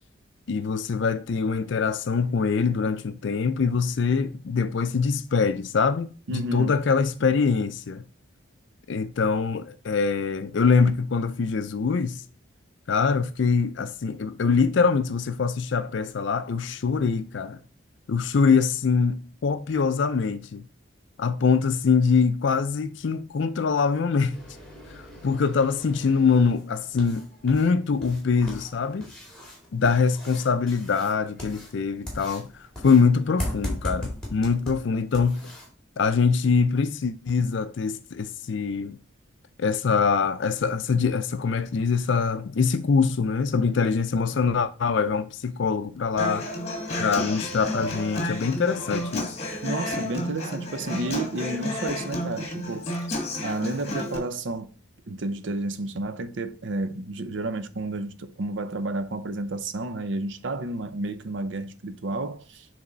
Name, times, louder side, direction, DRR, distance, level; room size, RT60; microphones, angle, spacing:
voice 1, 0.5-8.0 8.9-12.2 12.9-17.6 18.1-20.7 21.2-24.4 25.2-29.1 29.7-35.5 36.0-39.0 39.6-46.5 47.0-49.3 53.1-53.2, left 5 dB, 65° left, 0.4 m, -24 dB
voice 2, 6.3-6.7 49.6-52.9 53.4-54.7 55.1-62.7, right 2 dB, 65° right, 0.6 m, -31 dB
sound 1, 24.3-35.7, left 1 dB, 5° left, 2.0 m, -38 dB
Human voice / Acoustic guitar, 46.2-54.2, left 1 dB, 30° left, 1.3 m, -31 dB
7.2 x 3.4 x 3.9 m
head